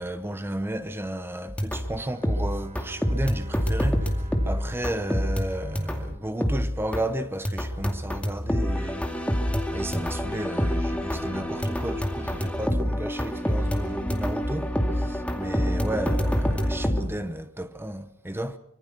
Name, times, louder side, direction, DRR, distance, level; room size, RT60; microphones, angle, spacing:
voice 1, 0.0-9.1 9.7-18.6, right 1 dB, 10° right, 1.0 m, -33 dB
sound 1, 1.5-2.0 2.2-6.1 6.4-7.1 7.4-17.0, equal, 5° left, 2.3 m, -27 dB
Bowed string instrument, 1.8-7.8, right 3 dB, 30° right, 4.9 m, -46 dB
25.0 x 23.5 x 6.0 m
head